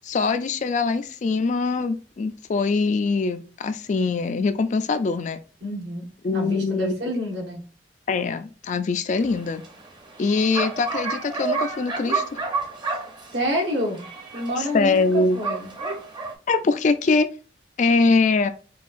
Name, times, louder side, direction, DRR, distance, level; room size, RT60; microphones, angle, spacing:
voice 1, 0.0-5.4 6.2-6.9 8.1-9.6 10.2-12.4 14.6-15.4 16.5-17.3 17.8-18.5, left 4 dB, 40° left, 0.3 m, -23 dB
voice 2, 5.6-6.1 6.3-7.6 13.3-14.1 14.3-15.7, equal, 75° right, 1.3 m, -28 dB
Bark, 9.2-16.3, right 4 dB, 25° right, 0.6 m, -31 dB
5.4 x 2.3 x 2.5 m
head